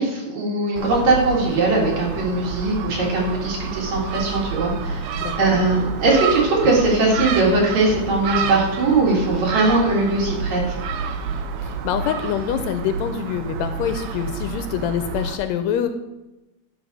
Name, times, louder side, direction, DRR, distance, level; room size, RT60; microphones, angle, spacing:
voice 1, 0.0-10.7, right 2 dB, 70° right, -2 dB, 3.2 m, -20 dB
Gull seagull, 0.8-15.4, right 5 dB, 90° right, 1.3 m, -29 dB
voice 2, 11.6-15.9, left 8 dB, 80° left, 8 dB, 1.7 m, -25 dB
11.0 x 3.7 x 6.0 m, 1.0 s
omnidirectional pair, 3.4 m